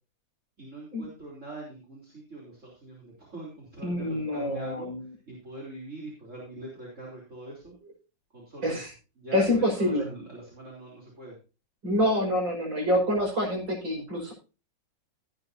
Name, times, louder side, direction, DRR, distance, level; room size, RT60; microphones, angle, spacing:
voice 1, 0.6-4.9 5.3-7.7 8.3-8.8 9.2-11.4, right 2 dB, 40° right, -4 dB, 4.0 m, -43 dB
voice 2, 3.8-5.0 8.6-8.9 9.3-10.0 11.8-14.3, left 1 dB, 90° right, 0 dB, 6.3 m, -26 dB
17.5 x 8.8 x 2.7 m, 0.32 s
omnidirectional pair, 2.0 m